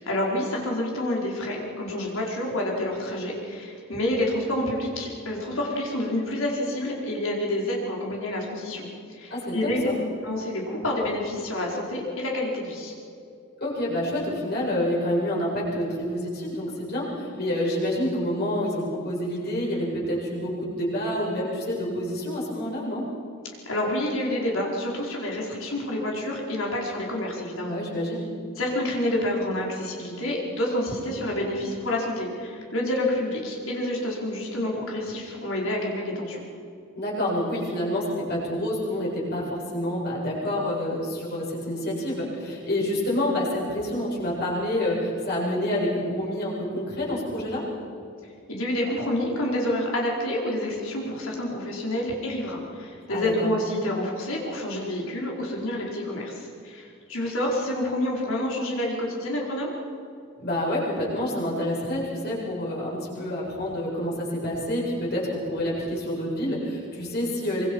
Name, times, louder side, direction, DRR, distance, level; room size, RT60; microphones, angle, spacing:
voice 1, 0.0-9.8 10.2-12.9 23.6-27.8 28.6-36.4 48.5-59.7, left 1 dB, 75° left, -2 dB, 4.9 m, -28 dB
voice 2, 9.3-9.9 13.6-23.0 27.7-28.3 37.0-47.6 53.1-53.5 60.4-67.7, left 1 dB, 50° left, -5 dB, 7.9 m, -28 dB
25.0 x 24.5 x 5.7 m, 2.5 s
head